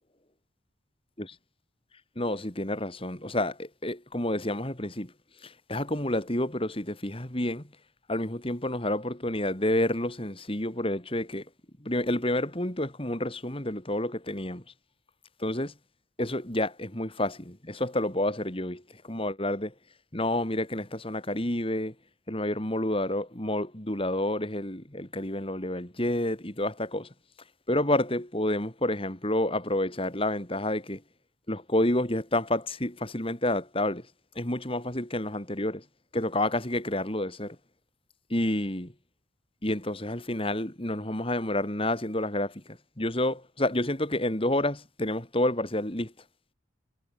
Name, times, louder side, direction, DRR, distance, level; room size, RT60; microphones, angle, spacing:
voice 1, 2.2-5.1 5.4-7.6 8.1-11.4 11.8-14.6 15.4-15.7 16.2-19.7 20.1-21.9 22.3-27.1 27.7-31.0 31.5-34.0 34.3-35.8 36.1-37.6 38.3-38.9 39.6-42.5 43.0-46.1, left 1 dB, 25° left, 3.0 m, -29 dB
head